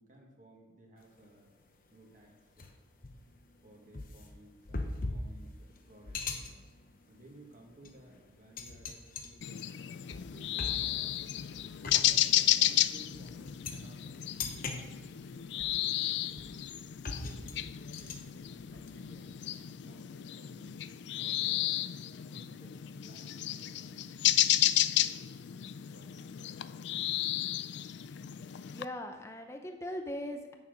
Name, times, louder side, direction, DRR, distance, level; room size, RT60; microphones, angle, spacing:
voice 1, 0.0-1.5 1.9-2.6 3.3-11.1 11.9-16.6 17.2-19.4 19.8-20.8 21.1-21.9 22.3-26.6, right 1 dB, 40° right, -1 dB, 1.8 m, -58 dB
sound 1, 1.0-1.3 1.7-1.8 2.6-19.7, left 3 dB, 45° left, 0.8 m, -42 dB
sound 2, 9.4-28.8, left 13 dB, 65° left, 0.3 m, -32 dB
voice 2, 11.4-12.0 27.2-27.5 28.7-30.5, left 1 dB, 15° left, 5 dB, 0.6 m, -41 dB
8.5 x 7.2 x 5.2 m, 1.2 s
head